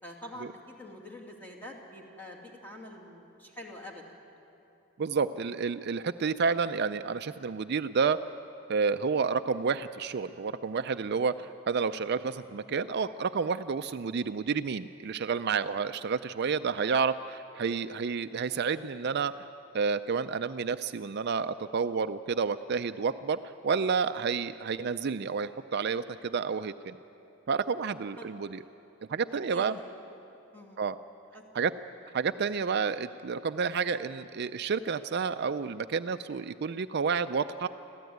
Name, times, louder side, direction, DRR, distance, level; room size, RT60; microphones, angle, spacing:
voice 1, 0.0-4.0 28.2-28.3 29.3-30.0 30.5-30.8 31.3-31.4, left 1 dB, 10° left, -1 dB, 2.6 m, -46 dB
voice 2, 5.0-8.2 8.7-19.3 19.7-27.0 27.5-28.6 29.1-29.8 30.8-30.9 31.5-31.7 32.1-37.7, right 5 dB, 55° right, 11 dB, 0.4 m, -30 dB
25.5 x 15.0 x 9.3 m, 2.8 s
head